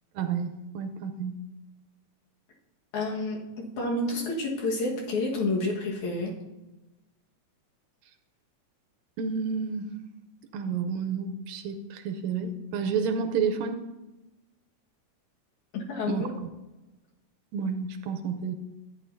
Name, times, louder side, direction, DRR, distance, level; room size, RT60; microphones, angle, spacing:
voice 1, 0.2-1.4 9.2-9.9 10.5-13.8 16.1-16.2 17.5-18.5, right 6 dB, 80° right, 7 dB, 1.9 m, -30 dB
voice 2, 2.9-6.4 15.7-16.4, left 2 dB, 75° left, -1 dB, 3.0 m, -29 dB
13.0 x 9.0 x 2.7 m, 1.1 s
omnidirectional pair, 3.4 m